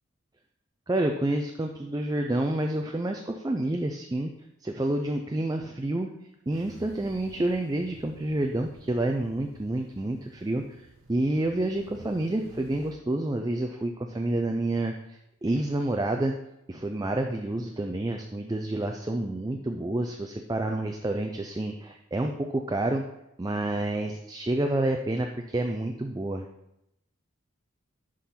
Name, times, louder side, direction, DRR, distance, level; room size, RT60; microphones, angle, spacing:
voice 1, 0.9-4.3 4.6-6.1 6.5-10.8 11.1-16.3 16.7-23.0 23.4-25.3 25.5-26.5, right 1 dB, 20° right, 3 dB, 0.4 m, -29 dB
sound 1, 6.5-12.9, right 1 dB, 80° right, 1.0 m, -51 dB
11.0 x 3.8 x 4.3 m, 0.83 s
head